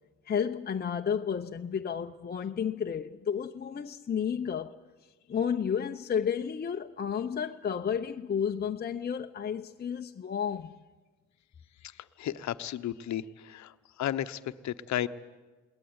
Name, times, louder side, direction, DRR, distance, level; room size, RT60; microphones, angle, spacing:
voice 1, 0.3-4.8 5.3-10.7, left 7 dB, 30° left, 0.7 m, -32 dB
voice 2, 12.2-13.7 14.0-15.1, left 11 dB, 65° left, 0.9 m, -33 dB
21.0 x 18.5 x 9.5 m
cardioid pair, 90°, 30 cm